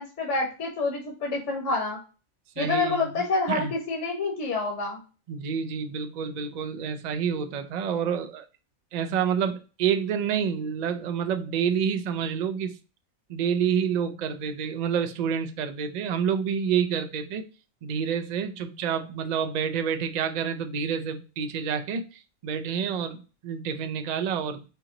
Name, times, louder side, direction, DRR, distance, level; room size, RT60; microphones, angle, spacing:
voice 1, 0.0-2.0 2.6-5.0, left 3 dB, 65° left, 1.3 m, -27 dB
voice 2, 2.6-3.7 5.3-8.5 8.9-12.7 13.3-17.4 17.8-22.0 22.4-24.6, right 7 dB, 70° right, 0.4 m, -28 dB
4.6 x 2.9 x 3.7 m
omnidirectional pair, 1.4 m